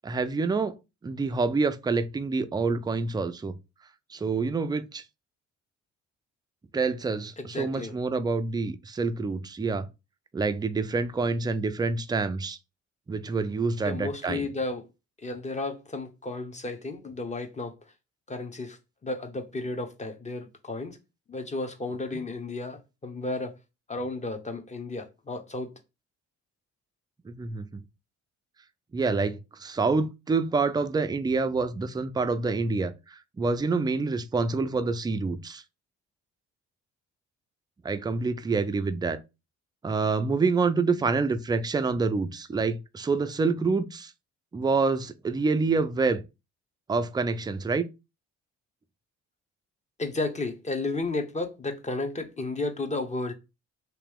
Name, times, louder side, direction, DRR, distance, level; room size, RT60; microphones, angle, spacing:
voice 1, 0.0-0.7 1.0-3.6 4.1-5.0 6.7-9.9 10.3-12.6 13.1-14.5 22.1-22.2 27.3-27.8 28.9-35.6 37.8-39.2 39.8-44.1 44.5-46.2 46.9-47.9, right 4 dB, 15° right, 0.3 m, -27 dB
voice 2, 7.4-7.9 13.8-14.8 15.2-17.7 18.3-21.0 21.3-23.5 23.9-25.7 50.0-53.3, left 2 dB, 25° left, 0.8 m, -33 dB
3.1 x 2.9 x 3.4 m
cardioid pair, 90°, 30 cm